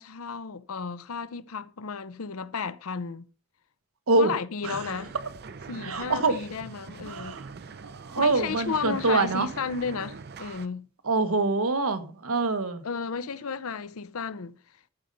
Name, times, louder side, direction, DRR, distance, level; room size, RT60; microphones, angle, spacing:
voice 1, 0.0-3.3 4.2-5.1 5.7-7.4 8.1-10.9 12.8-14.6, left 5 dB, 85° left, 0.6 m, -33 dB
sound 1, 4.6-10.7, right 5 dB, 50° right, 0.5 m, -43 dB
voice 2, 5.8-6.4 7.0-7.5 7.8-9.5 11.0-12.8, right 3 dB, 80° right, 1.2 m, -25 dB
14.0 x 5.2 x 5.4 m
head